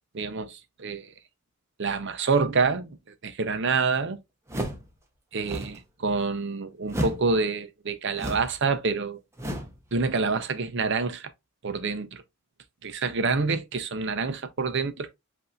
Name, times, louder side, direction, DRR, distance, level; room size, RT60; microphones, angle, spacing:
voice 1, 0.1-1.1 1.8-3.0 3.2-4.2 5.3-9.2 9.9-11.3 11.6-12.2 12.8-15.1, right 4 dB, 60° right, 0.7 m, -27 dB
sound 1, 4.5-4.9 5.4-5.8 6.9-7.3 8.1-8.6 9.4-9.8, equal, 15° right, 0.9 m, -32 dB
7.8 x 2.8 x 2.4 m
head